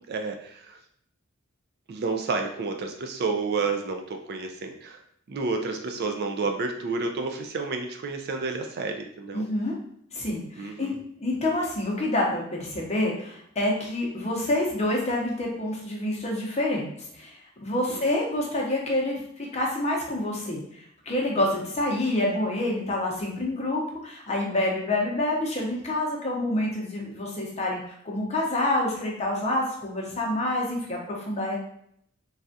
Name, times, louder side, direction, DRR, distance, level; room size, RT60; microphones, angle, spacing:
voice 1, 0.1-0.8 1.9-5.0 5.3-9.4 10.6-11.0 17.9-18.0 21.4-21.5, right 4 dB, 50° right, 4 dB, 0.4 m, -30 dB
voice 2, 9.3-9.8 10.1-31.6, left 1 dB, 35° left, -2 dB, 0.7 m, -27 dB
3.3 x 2.3 x 2.6 m, 0.68 s
head